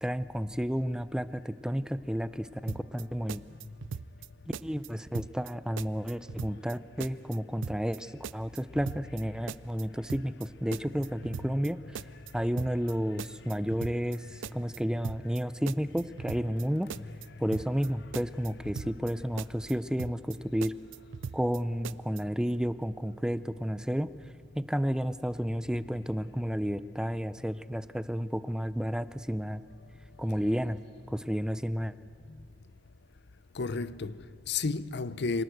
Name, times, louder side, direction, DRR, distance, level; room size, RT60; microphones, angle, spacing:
voice 1, 0.0-3.4 4.6-12.0 12.3-16.9 17.4-20.7 21.3-24.1 24.6-29.6 30.2-30.8 31.1-31.9, equal, 5° right, 0.5 m, -31 dB
sound 1, 2.7-3.0 3.3-4.3 4.5-4.9 5.1-5.5 5.8-6.7 7.0-7.4 7.6-8.0 8.2-9.2 9.5-9.8 10.1-10.5 10.7-11.7 11.9-12.3 12.6-12.9 13.2-14.2 14.4-14.8 15.0-15.4 15.7-16.6 16.9-17.3 17.5-17.9 18.1-19.1 19.4-19.7 20.0-20.4 20.6-21.6 21.8-22.2, right 6 dB, 90° right, 0.5 m, -40 dB
voice 2, 33.5-35.4, left 4 dB, 65° left, 0.7 m, -34 dB
26.0 x 18.5 x 8.0 m
head